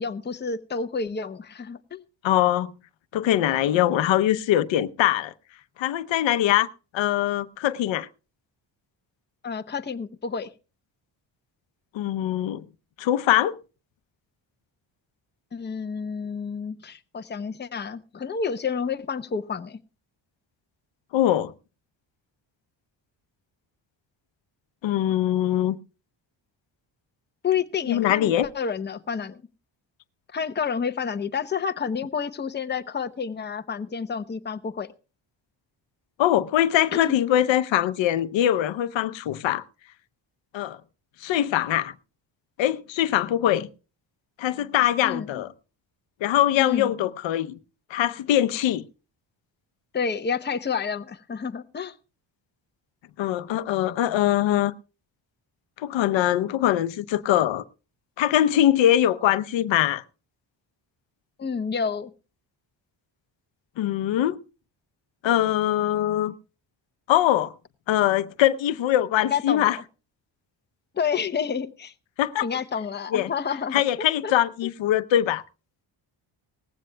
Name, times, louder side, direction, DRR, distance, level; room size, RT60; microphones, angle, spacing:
voice 1, 0.0-2.0 9.4-10.5 15.5-19.8 27.4-29.4 30.3-34.9 36.9-37.2 45.0-45.4 46.6-46.9 49.9-51.9 61.4-62.1 69.3-69.7 70.9-71.9 72.4-73.8 74.2-74.3, left 6 dB, 25° left, 0.8 m, -29 dB
voice 2, 2.2-2.7 3.1-5.3 5.8-6.7 6.9-8.1 11.9-12.6 13.0-13.5 21.1-21.5 24.8-25.8 27.9-28.5 36.2-39.6 40.5-40.8 41.2-41.9 42.6-43.7 44.4-45.5 46.2-47.6 47.9-48.8 53.2-54.7 55.8-57.6 58.2-60.0 63.8-64.4 65.2-66.4 67.1-67.5 67.9-69.8 72.2-72.5 73.1-73.3 73.7-75.4, left 12 dB, 80° left, 0.8 m, -22 dB
19.0 x 15.5 x 2.3 m
cardioid pair, 130°, 44 cm